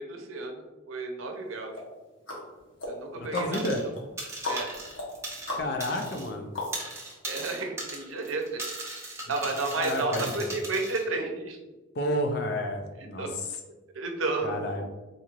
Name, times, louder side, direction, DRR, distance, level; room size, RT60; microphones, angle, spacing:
voice 1, 0.0-1.7 2.8-3.6 4.4-4.7 5.6-5.7 7.3-8.6 9.3-11.6 13.2-13.4 13.9-14.7, right 3 dB, 90° right, 3 dB, 0.6 m, -32 dB
sound 1, 1.7-7.1 7.6-7.7, left 2 dB, 75° left, 1.0 m, -38 dB
voice 2, 3.3-3.8 5.6-6.5 9.7-10.2 11.9-13.5 14.4-14.8, left 1 dB, 55° left, 4 dB, 0.5 m, -30 dB
sound 2, 3.5-3.9 4.2-6.3 6.6-11.0, right 2 dB, 15° right, 0.7 m, -38 dB
4.1 x 3.1 x 2.4 m, 1.1 s
head